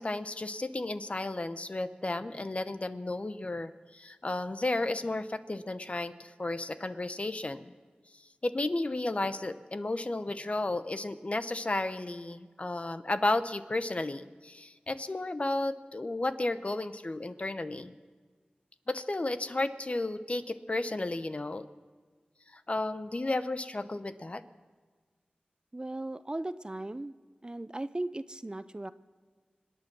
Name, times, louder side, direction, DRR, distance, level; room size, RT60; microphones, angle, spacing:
voice 1, 0.0-7.7 8.4-17.9 18.9-21.7 22.5-24.4, left 2 dB, 40° left, 11 dB, 0.8 m, -33 dB
voice 2, 25.7-27.1 27.4-28.9, right 2 dB, 30° right, 14 dB, 0.5 m, -37 dB
26.0 x 9.1 x 6.1 m, 1.5 s
wide cardioid pair, 50°, 3 cm